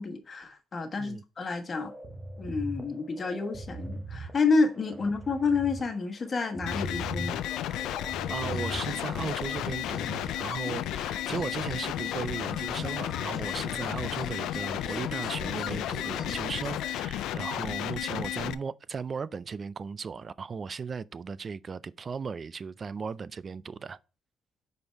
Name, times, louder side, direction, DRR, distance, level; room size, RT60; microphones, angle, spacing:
voice 1, 0.0-1.9 2.4-7.4, left 4 dB, 40° left, 1.3 m, -29 dB
sound 1, 1.7-10.3, right 1 dB, 25° right, 1.0 m, -40 dB
sound 2, 6.7-18.5, left 13 dB, 90° left, 0.3 m, -33 dB
sound 3, 7.4-17.0, left 6 dB, 60° left, 1.1 m, -43 dB
voice 2, 8.3-24.0, right 5 dB, 40° right, 0.3 m, -36 dB
5.1 x 4.4 x 4.5 m
cardioid pair, 90°, 0 cm